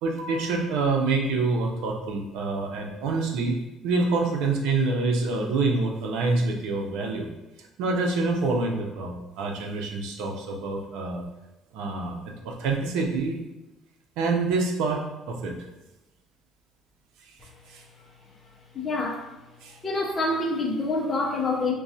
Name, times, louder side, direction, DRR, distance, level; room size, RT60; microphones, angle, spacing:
voice 1, 0.0-3.6 3.8-7.3 7.8-11.3 11.7-13.4 14.2-15.6 17.7-17.8 19.6-19.8, right 3 dB, 85° right, 1 dB, 0.6 m, -26 dB
voice 2, 18.7-19.2 19.8-21.7, left 2 dB, 20° left, 0 dB, 0.6 m, -26 dB
5.9 x 2.2 x 2.7 m, 1.0 s
cardioid pair, 160°, 0 cm